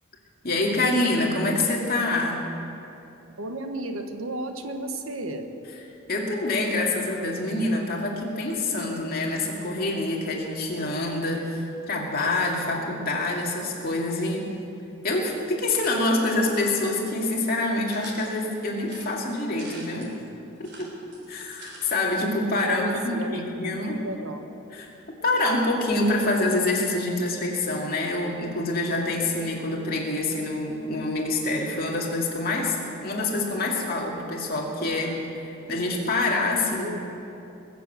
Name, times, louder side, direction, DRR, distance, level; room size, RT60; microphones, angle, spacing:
voice 1, 0.4-2.4 6.1-14.5 15.0-20.1 20.6-20.9 21.3-24.0 24.7-24.9 25.2-32.8 33.0-35.1 35.7-36.9, left 2 dB, 45° left, -2 dB, 2.5 m, -26 dB
voice 2, 3.4-5.5 22.7-23.6 23.9-24.4 36.6-37.1, right 1 dB, 75° right, 6 dB, 1.3 m, -34 dB
sound 1, 17.9-18.3 18.8-20.1 20.6-21.9 22.2-22.3 22.5-22.6, right 2 dB, 55° right, 3.6 m, -45 dB
21.0 x 7.7 x 8.1 m, 2.9 s
head